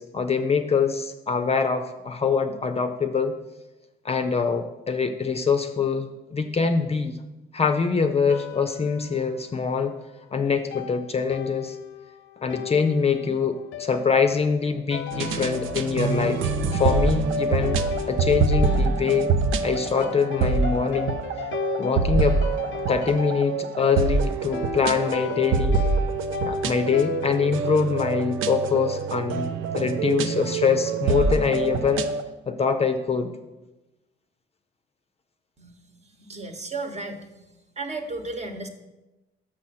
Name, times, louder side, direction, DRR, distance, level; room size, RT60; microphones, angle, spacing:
voice 1, 0.0-3.4 4.0-7.2 7.5-10.0 10.3-11.8 12.4-17.8 18.1-19.3 19.6-21.2 21.8-22.4 22.9-25.8 26.4-29.5 29.7-32.1 32.5-33.3, left 5 dB, 30° left, 7 dB, 0.6 m, -24 dB
sound 1, 8.3-9.8 10.7-27.5, left 12 dB, 75° left, 0.4 m, -36 dB
sound 2, 15.1-32.2, right 4 dB, 85° right, 0.6 m, -25 dB
voice 2, 35.6-38.7, right 3 dB, 35° right, 5 dB, 1.1 m, -35 dB
6.3 x 6.2 x 5.8 m, 1.1 s
cardioid pair, 90°, 20 cm